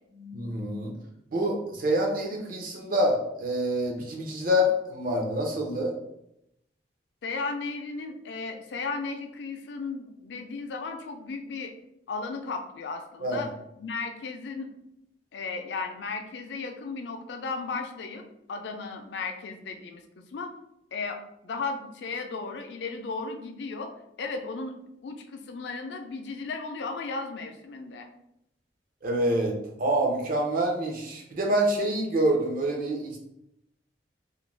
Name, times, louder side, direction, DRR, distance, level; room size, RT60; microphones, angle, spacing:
voice 1, 0.2-0.9 1.3-6.0 13.2-13.5 29.0-33.2, equal, 50° right, 0 dB, 0.6 m, -26 dB
voice 2, 7.2-11.7 12.1-13.5 13.8-14.7 15.3-18.2 18.5-20.0 20.3-20.5 20.9-24.7 25.0-28.1, left 4 dB, 70° left, 5 dB, 0.4 m, -35 dB
2.4 x 2.1 x 3.2 m, 0.81 s
head